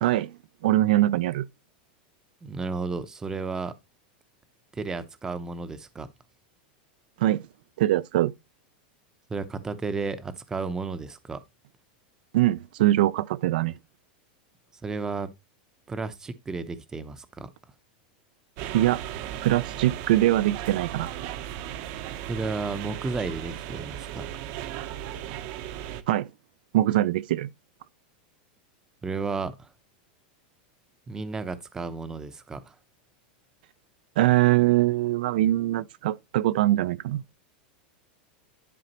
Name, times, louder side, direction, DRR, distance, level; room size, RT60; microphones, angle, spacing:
voice 1, 0.0-0.4 0.6-1.5 7.2-7.4 7.8-8.3 12.3-13.8 18.7-19.0 19.4-21.1 26.1-26.3 26.7-27.5 34.2-37.2, right 15 dB, 70° right, 0.4 m, -22 dB
voice 2, 2.4-3.7 4.7-6.1 9.3-11.4 14.8-15.3 15.9-17.5 22.3-24.3 29.0-29.7 31.1-32.7, right 4 dB, 10° right, 0.7 m, -33 dB
sound 1, 18.6-26.0, right 11 dB, 45° right, 0.8 m, -36 dB
11.0 x 5.0 x 2.9 m
supercardioid pair, 160°, 5 cm